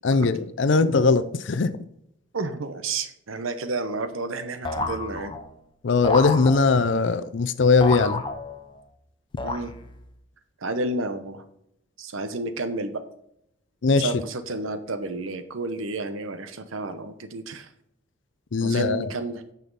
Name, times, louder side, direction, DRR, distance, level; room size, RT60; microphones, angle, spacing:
voice 1, 0.0-1.7 5.8-8.2 13.8-14.2 18.5-19.1, left 4 dB, 60° left, 13 dB, 0.5 m, -20 dB
voice 2, 2.3-5.4 9.4-9.7 10.6-11.4 12.0-13.0 14.0-17.7 18.6-19.4, right 2 dB, 80° right, 10 dB, 1.0 m, -31 dB
sound 1, 4.6-5.6 6.0-7.0 7.8-8.8 9.4-10.1, left 3 dB, 25° left, 0.7 m, -30 dB
9.2 x 5.8 x 4.0 m, 0.78 s
head